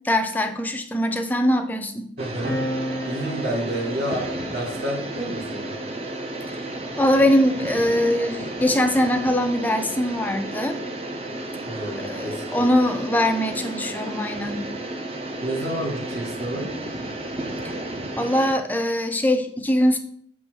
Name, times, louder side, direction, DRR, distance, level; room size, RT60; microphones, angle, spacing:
voice 1, 0.0-2.1 7.0-10.8 12.0-14.7 17.6-17.7 18.1-20.0, left 1 dB, 10° left, 6 dB, 0.5 m, -22 dB
sound 1, 2.2-18.6, right 1 dB, 30° right, 0.7 m, -33 dB
voice 2, 2.2-2.5 3.1-5.7 11.6-12.7 15.4-16.7, right 1 dB, 60° right, -3 dB, 1.8 m, -29 dB
sound 2, 2.4-9.4 10.3-12.2, equal, 85° right, 1.7 m, -37 dB
7.1 x 3.2 x 6.1 m, 0.65 s
head